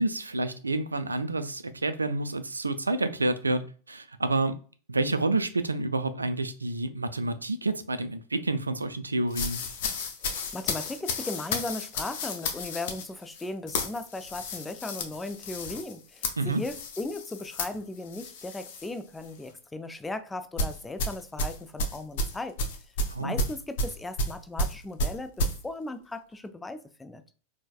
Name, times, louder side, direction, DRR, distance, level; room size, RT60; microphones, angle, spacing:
voice 1, 0.0-4.5 4.9-9.6 16.4-16.6 23.1-23.4, right 2 dB, 80° right, 0.3 m, -29 dB
sound 1, 9.3-18.9 19.2-19.5 20.6-25.6, left 1 dB, 50° left, 0.6 m, -32 dB
voice 2, 10.2-22.6 23.2-27.2, left 2 dB, 10° left, 0.3 m, -37 dB
4.5 x 2.1 x 2.3 m
figure-of-eight pair, 90°, 0 cm